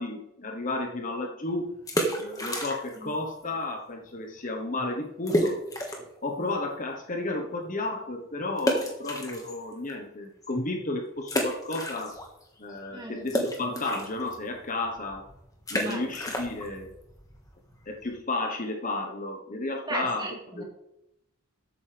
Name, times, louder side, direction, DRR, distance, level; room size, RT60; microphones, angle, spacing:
voice 1, 0.0-1.7 2.2-5.6 6.2-12.1 12.6-15.2 15.7-16.9 17.9-20.6, left 2 dB, 35° left, 3 dB, 1.1 m, -32 dB
sound 1, 1.7-3.1 3.4-3.5 4.1-4.2 4.4-4.5 5.3-6.2 6.7-6.8 8.6-9.9 10.4-10.5 11.2-12.4 12.7-18.2, equal, 15° left, 1.6 m, -31 dB
voice 2, 12.9-13.3 15.8-16.0 19.9-20.6, right 2 dB, 20° right, 0 dB, 2.4 m, -35 dB
13.5 x 8.8 x 3.4 m, 0.84 s
head